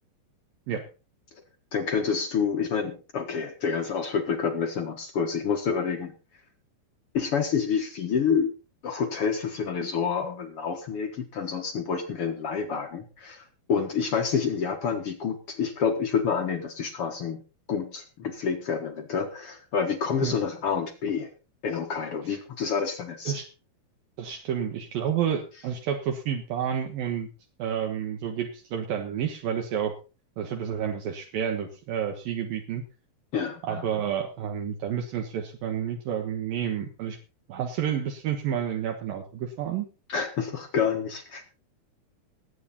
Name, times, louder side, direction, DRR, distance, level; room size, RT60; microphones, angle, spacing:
voice 1, 1.7-6.1 7.1-8.5 8.8-17.4 17.7-21.3 21.6-23.4 33.3-33.8 40.1-41.5, left 6 dB, 55° left, 5 dB, 1.7 m, -28 dB
voice 2, 24.2-27.3 27.6-30.0 30.4-32.8 33.6-37.2 37.5-39.9, right 8 dB, 70° right, 3 dB, 3.0 m, -30 dB
19.5 x 8.7 x 4.2 m, 0.32 s
omnidirectional pair, 4.4 m